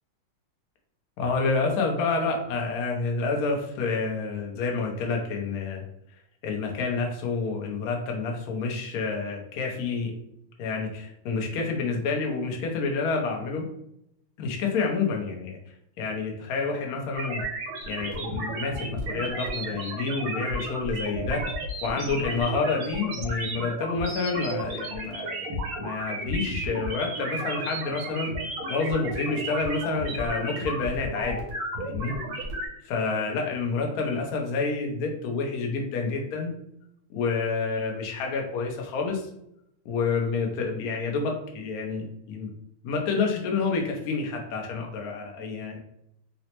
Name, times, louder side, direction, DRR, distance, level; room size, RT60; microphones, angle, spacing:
voice 1, 1.2-5.9 6.4-10.1 10.6-13.7 14.4-15.6 16.0-17.4 17.9-21.4 21.8-25.4 25.8-28.3 28.7-31.4 31.8-32.1 32.8-36.5 37.1-39.2 39.8-42.5 42.8-45.8, left 4 dB, 80° left, 1 dB, 0.8 m, -28 dB
sound 1, 17.1-32.7, right 1 dB, 75° right, 1.6 m, -33 dB
3.9 x 2.1 x 2.9 m, 0.75 s
omnidirectional pair, 2.4 m